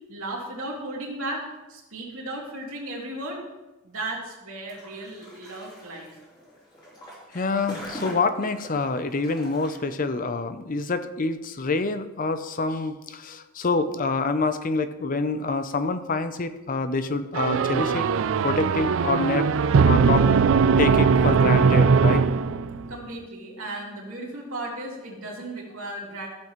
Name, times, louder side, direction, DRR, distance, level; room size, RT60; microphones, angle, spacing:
voice 1, 0.1-3.4 3.8-6.1 22.9-26.3, right 1 dB, 85° right, -3 dB, 2.7 m, -35 dB
sound 1, 4.7-9.8, equal, 20° left, 3.3 m, -42 dB
voice 2, 7.3-18.1 18.4-19.5 19.8-20.2 20.8-22.2, left 3 dB, 40° left, 11 dB, 0.5 m, -26 dB
sound 2, 17.3-22.9, right 5 dB, 65° right, 0.4 m, -20 dB
sound 3, 21.6-24.5, right 2 dB, 5° left, 2.0 m, -41 dB
14.0 x 7.2 x 3.1 m, 1.0 s
head